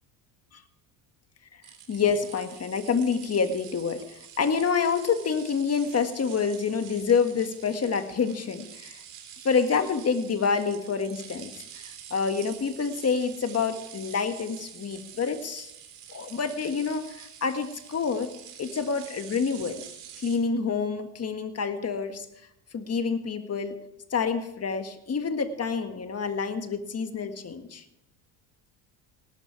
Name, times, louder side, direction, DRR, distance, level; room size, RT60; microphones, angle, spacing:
sound 1, 1.6-20.4, right 9 dB, 75° right, 3.5 m, -47 dB
voice 1, 1.9-9.0 9.4-11.8 12.1-15.7 16.1-18.3 18.6-19.8 20.2-22.3 22.7-23.8 24.1-27.8, left 5 dB, 35° left, 8 dB, 1.8 m, -27 dB
18.0 x 12.0 x 3.4 m, 0.83 s
supercardioid pair, 80°, 44 cm